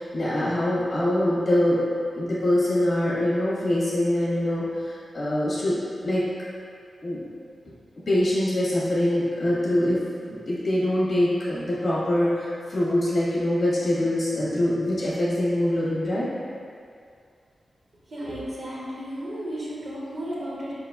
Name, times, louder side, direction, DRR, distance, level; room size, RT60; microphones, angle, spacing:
voice 1, 0.0-1.8 2.1-6.3 7.0-7.2 8.1-16.3, left 1 dB, 65° left, -8 dB, 1.1 m, -24 dB
voice 2, 18.1-20.8, equal, 70° right, -7 dB, 1.0 m, -33 dB
4.5 x 3.8 x 2.4 m, 2.2 s
supercardioid pair, 40°, 0 cm